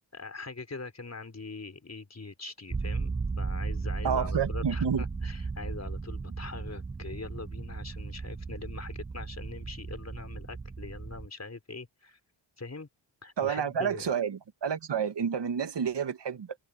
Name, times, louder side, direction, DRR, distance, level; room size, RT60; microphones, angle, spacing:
voice 1, 0.0-12.2 12.6-12.9 13.2-14.1, left 3 dB, 35° left, 4.7 m, -43 dB
sound 1, 2.7-11.3, right 4 dB, 15° right, 0.3 m, -35 dB
voice 2, 4.0-5.0 13.4-16.6, right 7 dB, 65° right, 1.8 m, -30 dB
cardioid pair, 60°, 45 cm